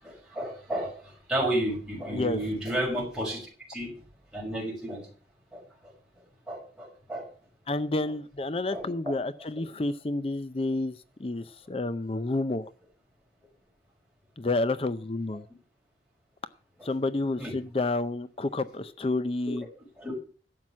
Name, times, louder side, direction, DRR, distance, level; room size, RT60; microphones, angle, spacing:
voice 1, 0.0-3.9 4.3-5.1 5.5-5.9 6.5-7.3 8.7-8.9 16.8-16.9 17.4-17.6 20.0-20.1, right 1 dB, 5° right, -3 dB, 6.0 m, -32 dB
voice 2, 7.7-12.7 14.4-15.5 16.8-19.7, left 2 dB, 30° left, 14 dB, 0.5 m, -30 dB
12.0 x 7.8 x 7.2 m, 0.39 s
head